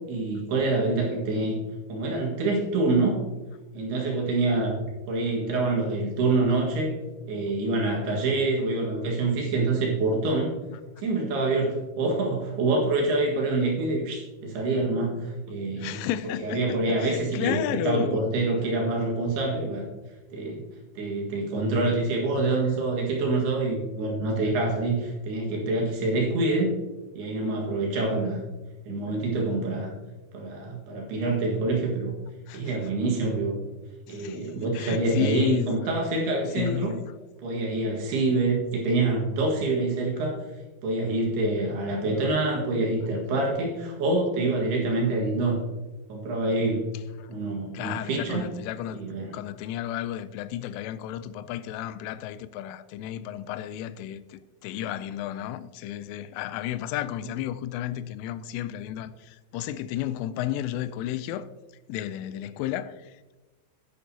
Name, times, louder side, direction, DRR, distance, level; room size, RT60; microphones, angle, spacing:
voice 1, 0.1-1.6 1.9-3.2 3.7-4.8 5.1-6.9 7.3-10.5 11.0-16.0 16.4-19.8 20.3-20.6 21.0-26.7 27.2-28.4 28.8-29.9 30.3-32.1 32.5-33.6 34.1-36.9 37.4-40.4 40.8-45.6 46.1-46.9 47.3-48.5 48.9-49.3, right 2 dB, 60° right, 3.4 m, -26 dB
voice 2, 15.8-18.2 32.5-32.7 34.1-35.7 36.6-37.1 47.2-47.4 47.7-49.0 49.3-61.5 61.9-63.4, left 12 dB, 85° left, 3.0 m, -33 dB
11.0 x 10.5 x 2.8 m
omnidirectional pair, 5.6 m